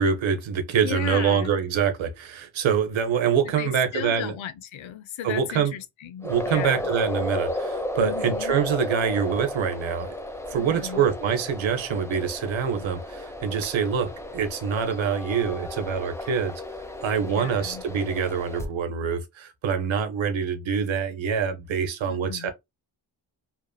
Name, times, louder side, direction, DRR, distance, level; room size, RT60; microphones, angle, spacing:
voice 1, 0.0-4.3 5.2-5.7 6.2-10.1 10.5-16.6 17.0-22.5, right 7 dB, 65° right, 0.8 m, -25 dB
voice 2, 0.8-1.6 3.6-6.9 8.0-8.6 10.5-11.1 17.2-17.8 22.1-22.5, left 10 dB, 70° left, 0.7 m, -35 dB
sound 1, 6.2-18.7, left 1 dB, 5° left, 0.6 m, -34 dB
2.9 x 2.4 x 2.2 m
supercardioid pair, 45°, 49 cm